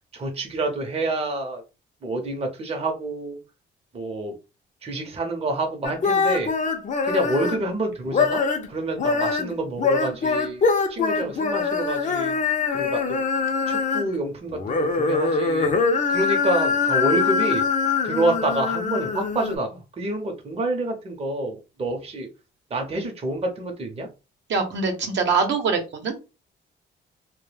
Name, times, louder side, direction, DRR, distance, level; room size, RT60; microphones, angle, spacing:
voice 1, 0.1-1.6 2.0-3.4 3.9-4.3 4.8-6.5 7.0-10.6 10.9-12.4 12.7-13.2 13.7-15.7 16.1-17.6 18.0-22.3 22.7-24.1, right 2 dB, 30° right, 2 dB, 0.7 m, -28 dB
sound 1, 5.8-7.7 8.1-8.7 9.0-14.2 14.5-19.6, left 5 dB, 40° left, 0.5 m, -23 dB
voice 2, 24.5-26.1, right 4 dB, 65° right, 3 dB, 0.8 m, -23 dB
2.2 x 2.1 x 3.2 m, 0.29 s
cardioid pair, 90°, 20 cm